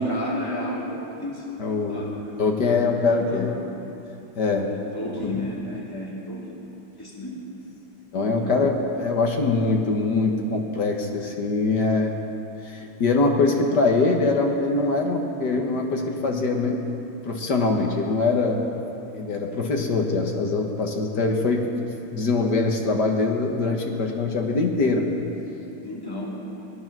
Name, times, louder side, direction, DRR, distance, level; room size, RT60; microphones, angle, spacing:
voice 1, 0.0-1.5 1.8-2.4 3.0-3.5 4.7-6.6 7.0-7.4 8.2-8.6 25.8-26.4, equal, 10° left, -5 dB, 2.6 m, -32 dB
voice 2, 1.6-2.0 2.4-3.5 4.4-4.7 5.2-5.4 5.9-6.1 8.1-12.2 12.6-16.8 17.3-18.7 19.1-21.6 22.1-25.1, left 3 dB, 55° left, 2 dB, 1.8 m, -23 dB
18.0 x 11.5 x 6.1 m, 3.0 s
omnidirectional pair, 2.4 m